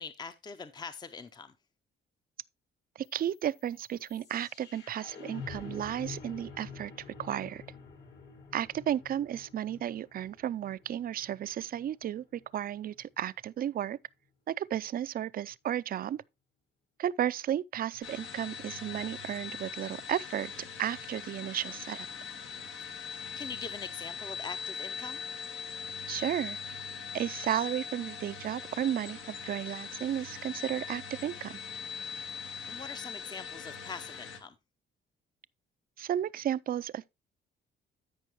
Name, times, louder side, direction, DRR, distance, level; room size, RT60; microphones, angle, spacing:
voice 1, 0.0-1.5 23.4-25.2 32.7-34.6, left 5 dB, 20° left, 0.6 m, -43 dB
voice 2, 3.0-6.9 7.2-7.6 8.5-12.2 12.5-14.0 14.5-16.2 17.0-20.5 20.8-22.1 26.1-26.6 27.1-31.6 36.0-37.1, right 10 dB, 45° right, 0.4 m, -33 dB
sound 1, 3.1-13.1, left 5 dB, 60° left, 2.3 m, -48 dB
sound 2, 18.0-34.4, left 6 dB, 80° left, 1.7 m, -41 dB
13.0 x 5.3 x 3.0 m
cardioid pair, 90°, 20 cm